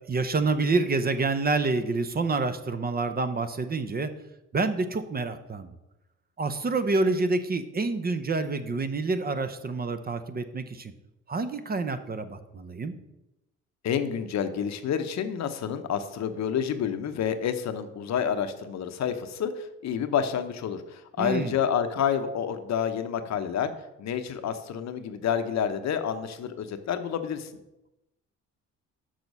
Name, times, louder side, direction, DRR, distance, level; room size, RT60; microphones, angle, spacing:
voice 1, 0.1-4.1 4.5-5.7 6.4-10.9 11.3-13.0 21.2-21.5, right 3 dB, 30° right, 10 dB, 0.7 m, -27 dB
voice 2, 13.8-23.7 24.0-27.5, left 8 dB, 65° left, 9 dB, 0.8 m, -29 dB
6.3 x 5.9 x 5.3 m, 0.93 s
cardioid pair, 90°, 30 cm